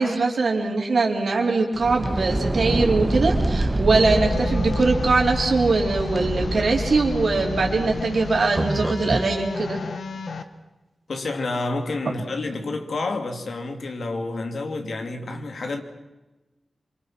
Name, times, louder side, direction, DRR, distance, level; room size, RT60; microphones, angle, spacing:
voice 1, 0.0-9.8, right 3 dB, 70° right, 4.4 m, -22 dB
sound 1, 1.7-9.3, right 1 dB, 25° right, 2.0 m, -26 dB
sound 2, 3.9-10.4, left 4 dB, 90° left, 1.6 m, -33 dB
voice 2, 11.1-15.8, left 2 dB, 70° left, 2.7 m, -29 dB
26.5 x 24.5 x 6.3 m
wide cardioid pair, 75°, 0 cm